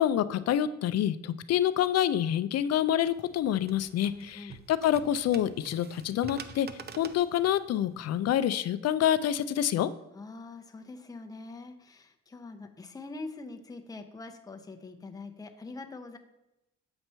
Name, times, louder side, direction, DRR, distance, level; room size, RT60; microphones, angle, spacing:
voice 1, 0.0-6.7 7.0-9.9, left 11 dB, 55° left, 14 dB, 0.4 m, -27 dB
sound 1, 3.0-8.4, right 5 dB, 35° right, 0.5 m, -48 dB
voice 2, 4.1-4.6 10.1-16.2, left 3 dB, 10° left, 5 dB, 0.6 m, -44 dB
7.7 x 2.9 x 5.5 m, 0.92 s
cardioid pair, 90°, 30 cm